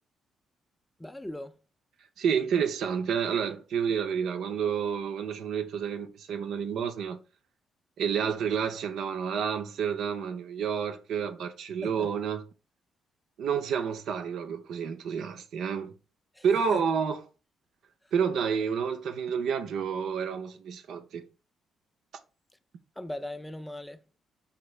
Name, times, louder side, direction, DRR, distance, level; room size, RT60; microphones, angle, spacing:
voice 1, 1.0-1.5 11.8-12.1 16.4-16.5 16.7-16.8 23.0-24.0, left 1 dB, 5° left, 0.4 m, -38 dB
voice 2, 2.2-7.2 8.0-12.4 13.4-15.9 16.4-17.2 18.1-21.2, right 7 dB, 70° right, 0.5 m, -29 dB
5.0 x 2.6 x 3.2 m
cardioid pair, 135°, 0 cm